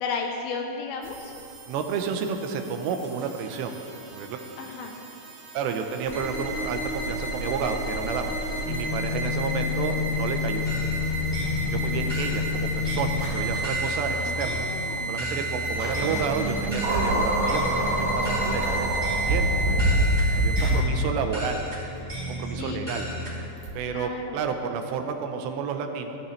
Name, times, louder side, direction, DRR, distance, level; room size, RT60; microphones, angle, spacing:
voice 1, 0.0-1.3 4.6-4.9 10.0-10.1 14.1-15.3 22.6-22.8 23.9-24.4, left 5 dB, 75° left, 2 dB, 2.5 m, -34 dB
sound 1, 1.0-20.7, left 1 dB, 40° right, 3.1 m, -30 dB
voice 2, 1.7-3.7 4.1-4.4 5.5-8.4 8.7-10.7 11.7-14.7 15.1-21.6 22.3-23.1 23.7-26.2, right 6 dB, 85° right, 5 dB, 3.0 m, -31 dB
sound 2, 10.6-23.3, equal, 10° right, 2.5 m, -34 dB
sound 3, 16.8-21.3 22.1-22.2 23.6-23.7, right 1 dB, 60° right, 2.2 m, -25 dB
15.0 x 14.0 x 3.2 m, 2.9 s
omnidirectional pair, 4.9 m